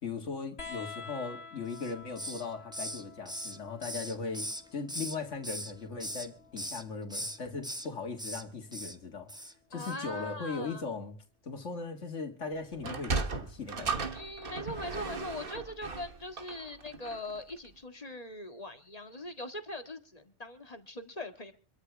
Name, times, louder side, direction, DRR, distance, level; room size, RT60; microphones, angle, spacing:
voice 1, 0.0-11.2 11.4-14.1, left 4 dB, 80° left, 3 dB, 2.2 m, -39 dB
sound 1, 0.6-7.7 9.0-9.8 11.1-11.2, left 5 dB, 55° left, 2.1 m, -50 dB
Hiss, 1.7-2.5 2.7-5.2 5.4-6.3 6.6-6.8 7.1-7.9 8.2-8.4 8.7-9.0 9.3-9.5 9.8-10.0, equal, 5° right, 0.9 m, -39 dB
voice 2, 9.7-10.8 14.1-21.5, left 2 dB, 30° left, 7 dB, 1.9 m, -41 dB
Sliding door, 12.7-17.4, right 4 dB, 50° right, 1.4 m, -36 dB
25.5 x 13.0 x 3.4 m, 0.37 s
omnidirectional pair, 1.2 m